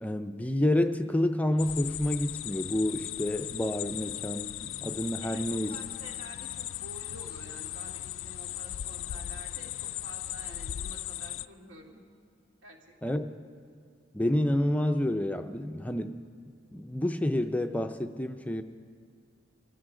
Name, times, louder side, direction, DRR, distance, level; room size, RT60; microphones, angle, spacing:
voice 1, 0.0-5.8 13.0-13.3 14.1-16.2 16.7-18.6, left 1 dB, 10° left, 7 dB, 0.4 m, -29 dB
sound 1, 1.6-11.4, left 13 dB, 75° left, 0.4 m, -38 dB
voice 2, 5.2-12.0 12.6-13.2, right 1 dB, 75° right, -1 dB, 2.4 m, -49 dB
24.5 x 15.5 x 3.7 m, 2.1 s
head